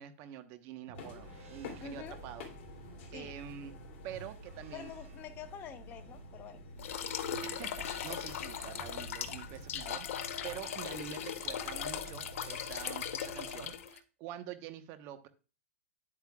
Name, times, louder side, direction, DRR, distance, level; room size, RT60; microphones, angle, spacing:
voice 1, 0.0-2.5 3.1-3.7 4.0-4.9 7.4-15.3, right 10 dB, 35° right, 9 dB, 1.1 m, -46 dB
sound 1, 0.9-9.8, left 4 dB, 45° left, 2.8 m, -51 dB
sound 2, 0.9-13.7, right 4 dB, 75° right, 2.9 m, -52 dB
voice 2, 1.8-2.2 3.1-3.3 4.7-6.6, left 9 dB, 25° left, 9 dB, 0.9 m, -47 dB
sound 3, 6.8-14.0, left 8 dB, 70° left, 1.0 m, -39 dB
10.0 x 8.4 x 2.4 m, 0.34 s
hypercardioid pair, 145°, 8 cm